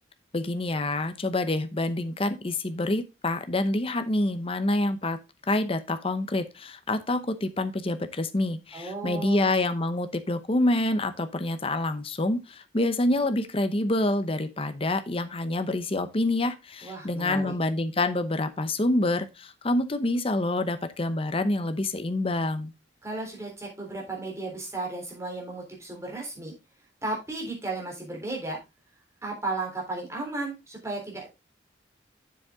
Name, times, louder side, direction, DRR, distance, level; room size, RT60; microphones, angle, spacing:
voice 1, 0.3-5.2 5.5-22.7, left 2 dB, 30° left, 10 dB, 0.8 m, -27 dB
voice 2, 8.7-9.5 16.8-17.5 23.0-26.5 27.0-28.6 29.2-31.3, right 2 dB, 15° right, -2 dB, 3.6 m, -34 dB
7.3 x 7.3 x 3.6 m, 0.24 s
head